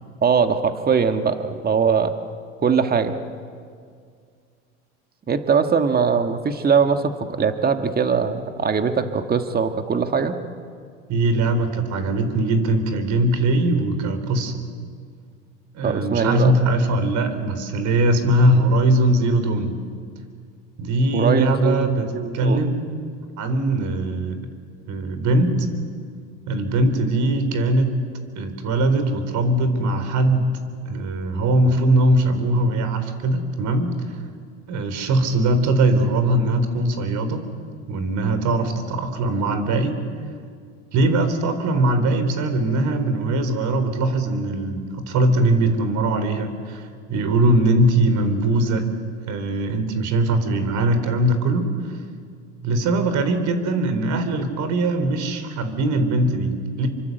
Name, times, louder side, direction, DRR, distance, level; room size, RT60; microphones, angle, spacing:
voice 1, 0.2-1.3 1.6-2.1 2.6-3.2 5.3-10.4 15.8-16.6 21.1-21.9 22.1-22.6, right 6 dB, 25° right, 7 dB, 1.9 m, -21 dB
voice 2, 11.1-14.5 15.7-19.7 20.8-22.9 23.4-24.4 24.9-25.5 26.5-27.9 28.3-30.5 30.9-33.9 34.7-37.4 37.9-40.0 40.9-48.8 49.3-51.7 52.6-56.9, right 1 dB, 55° right, 9 dB, 4.3 m, -21 dB
27.5 x 24.5 x 8.1 m, 2.1 s
hypercardioid pair, 90°, 35 cm